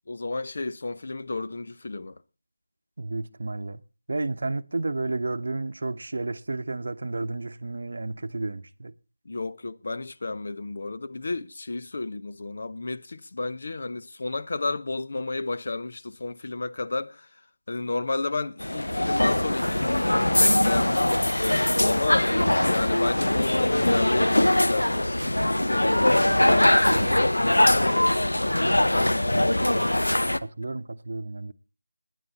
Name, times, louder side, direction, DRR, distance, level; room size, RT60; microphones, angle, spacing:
voice 1, 0.1-2.2 9.2-17.4 17.7-21.2 21.8-25.1 25.6-28.6 28.9-29.6, left 3 dB, 55° left, 0.8 m, -32 dB
voice 2, 3.0-3.8 4.1-8.9 26.9-27.2 29.6-30.0 30.4-31.5, right 2 dB, 60° right, 0.8 m, -32 dB
sound 1, 18.6-30.4, left 1 dB, 85° left, 0.9 m, -22 dB
19.0 x 10.0 x 4.1 m
figure-of-eight pair, 160°, 0 cm